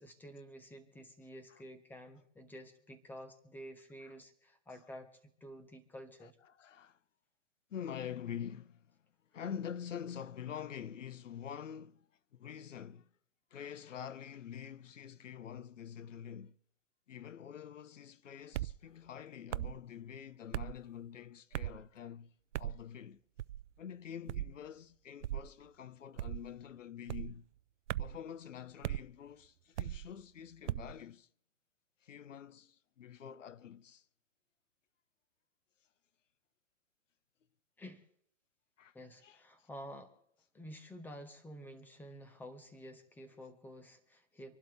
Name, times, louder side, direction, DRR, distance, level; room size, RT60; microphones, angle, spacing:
voice 1, 0.0-5.1 5.4-6.4 37.8-38.0 38.9-40.1 40.5-44.6, equal, 5° left, 1.3 m, -50 dB
voice 2, 6.5-7.0 7.7-9.0 9.3-12.1 12.3-13.1 13.5-16.6 17.1-22.3 22.6-23.2 23.8-27.5 28.0-31.3 32.0-34.0 38.8-38.9 39.2-39.7, left 8 dB, 80° left, 1.0 m, -46 dB
sound 1, 18.5-18.8 19.5-19.8 20.5-20.8 21.5-21.8 22.5-22.8 23.4-23.7 24.3-24.5 25.2-25.5 26.2-26.5 27.1-27.3 27.9-28.2 28.8-29.0 29.8-30.1 30.7-30.9, right 13 dB, 70° right, 0.5 m, -38 dB
26.0 x 12.0 x 3.5 m
hypercardioid pair, 140°, 37 cm